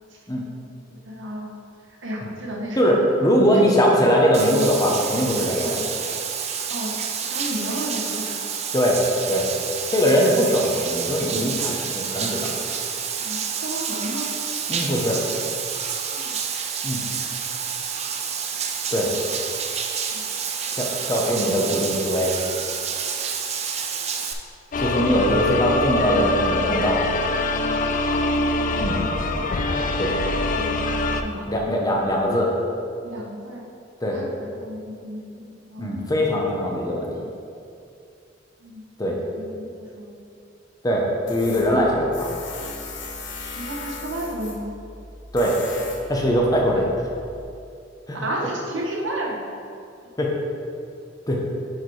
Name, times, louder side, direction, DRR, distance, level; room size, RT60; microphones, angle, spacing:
voice 1, 0.9-1.5 1.8-3.1 3.4-4.0 5.6-5.9 6.7-8.4 13.2-14.3 16.1-16.4 20.1-20.2 20.6-20.8 30.1-31.5 33.0-33.7 34.1-36.0 38.6-40.2 43.5-44.8 46.7-46.8 48.2-49.5, right 1 dB, 75° right, -1 dB, 1.1 m, -33 dB
voice 2, 2.8-5.8 8.7-9.0 9.3-9.5 9.9-12.5 14.7-15.2 16.8-17.0 18.9-19.1 20.8-22.3 24.8-27.0 28.8-29.0 30.0-30.1 31.5-32.5 34.0-34.2 35.8-37.1 39.0-39.2 40.8-42.3 45.3-46.9 48.1-48.2 50.2-50.3 51.3-51.4, equal, 20° left, -1 dB, 0.8 m, -21 dB
Bathtub (filling or washing), 4.3-24.3, right 6 dB, 35° right, 0.4 m, -29 dB
sound 1, 24.7-31.2, left 2 dB, 45° left, 0.4 m, -23 dB
Tools, 41.3-47.4, left 3 dB, 65° left, 0.9 m, -38 dB
6.6 x 4.6 x 4.7 m, 2.5 s
head